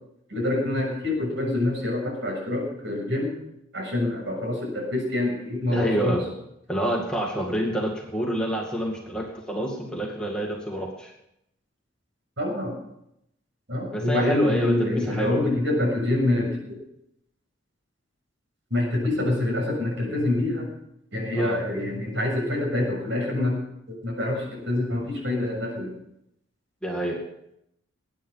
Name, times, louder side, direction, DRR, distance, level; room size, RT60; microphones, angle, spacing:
voice 1, 0.3-3.3 3.7-6.2 12.4-12.8 13.7-16.6 18.7-20.7 21.1-23.6 23.9-25.9, left 1 dB, 60° right, 0 dB, 7.1 m, -26 dB
voice 2, 5.7-6.3 6.7-11.1 13.9-15.5 21.4-21.6 26.8-27.2, equal, 5° left, -1 dB, 2.2 m, -28 dB
21.5 x 9.5 x 5.6 m, 0.79 s
head